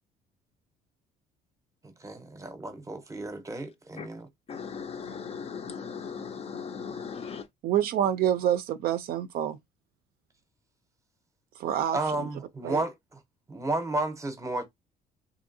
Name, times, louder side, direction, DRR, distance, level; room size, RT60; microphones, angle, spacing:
voice 1, 1.8-4.3 11.9-13.2 13.5-14.6, right 2 dB, 20° right, 0.7 m, -32 dB
voice 2, 4.5-7.5, left 6 dB, 35° left, 0.4 m, -38 dB
voice 3, 7.6-9.6 11.6-12.3 12.6-12.8, right 10 dB, 65° right, 0.4 m, -27 dB
2.8 x 2.7 x 2.6 m
cardioid pair, 110°, 17 cm